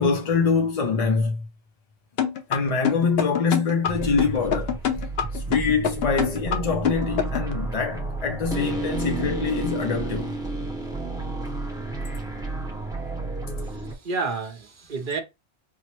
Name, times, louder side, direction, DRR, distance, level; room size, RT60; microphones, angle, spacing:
voice 1, 0.0-1.5 2.5-4.7 5.3-10.4, left 5 dB, 45° left, 0.5 m, -24 dB
sound 1, 2.2-7.5, left 8 dB, 75° left, 0.9 m, -25 dB
sound 2, 3.8-13.9, right 2 dB, 5° right, 0.6 m, -31 dB
voice 2, 13.7-15.2, right 4 dB, 55° right, 0.9 m, -30 dB
4.3 x 2.0 x 2.9 m
omnidirectional pair, 1.1 m